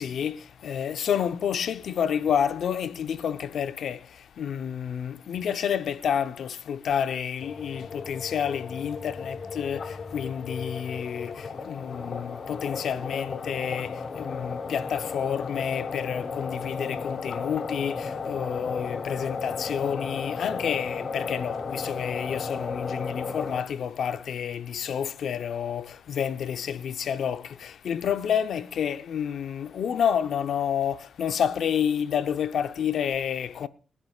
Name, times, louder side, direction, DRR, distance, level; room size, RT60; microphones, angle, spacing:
voice 1, 0.0-33.7, left 8 dB, 80° left, 0.8 m, -29 dB
sound 1, 7.4-23.6, left 4 dB, 55° left, 1.5 m, -34 dB
22.5 x 11.0 x 2.4 m
cardioid pair, 85°, 0 cm